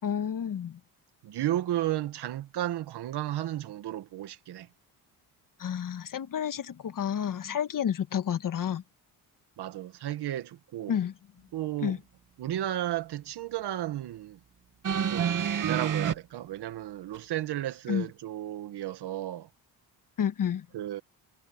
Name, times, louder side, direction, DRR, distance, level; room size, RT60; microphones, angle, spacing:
voice 1, 0.0-0.8 5.6-8.8 10.9-11.1 11.8-12.0 17.9-18.1 20.2-20.7, left 8 dB, 50° left, 1.7 m, -30 dB
voice 2, 1.2-4.7 9.6-11.0 11.5-12.0 12.4-14.4 15.1-19.5 20.7-21.0, right 13 dB, 75° right, 1.9 m, -33 dB
sound 1, 14.8-16.1 17.1-17.2, right 8 dB, 50° right, 2.5 m, -27 dB
cardioid pair, 95°, 40 cm